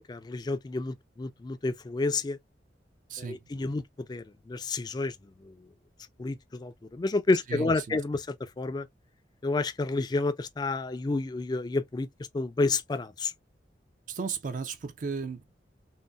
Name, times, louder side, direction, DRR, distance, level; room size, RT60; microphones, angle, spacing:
voice 1, 0.0-2.4 3.2-3.8 4.1-5.1 5.4-5.5 6.2-8.9 9.4-12.1 12.3-13.3, left 3 dB, 25° left, 0.3 m, -30 dB
voice 2, 7.5-8.0 14.1-15.5, right 5 dB, 45° right, 0.4 m, -35 dB
3.8 x 2.0 x 2.2 m
head